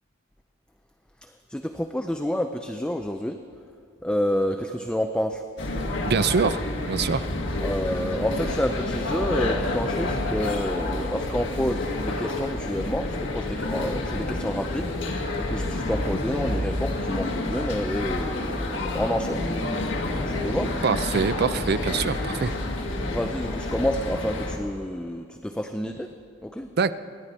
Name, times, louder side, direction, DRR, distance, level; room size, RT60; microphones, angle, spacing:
voice 1, 1.2-3.4 4.0-5.4 7.6-14.9 15.4-19.5 20.1-20.7 23.0-26.1 26.4-26.7, equal, 5° left, 6 dB, 0.5 m, -29 dB
sound 1, 5.6-24.6, left 2 dB, 70° left, 1.6 m, -29 dB
voice 2, 6.1-7.3 20.8-22.5 26.8-26.9, right 5 dB, 55° right, 13 dB, 0.5 m, -24 dB
27.0 x 11.0 x 4.3 m, 2.4 s
head